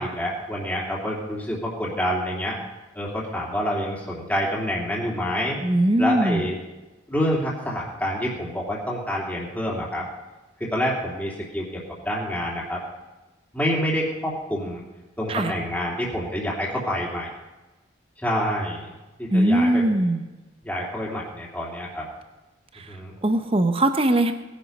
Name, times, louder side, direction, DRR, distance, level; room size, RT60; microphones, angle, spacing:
voice 1, 0.0-2.6 2.9-5.6 6.0-6.6 7.1-10.1 10.7-12.8 13.5-14.8 15.2-17.3 18.2-18.9 19.2-19.8 20.6-22.1 22.9-23.1, equal, 10° left, -5 dB, 2.9 m, -27 dB
voice 2, 5.6-6.5 15.3-15.5 19.3-20.2 22.7-22.9 23.2-24.3, right 1 dB, 30° right, 8 dB, 0.9 m, -20 dB
19.5 x 11.0 x 5.4 m, 1.1 s
head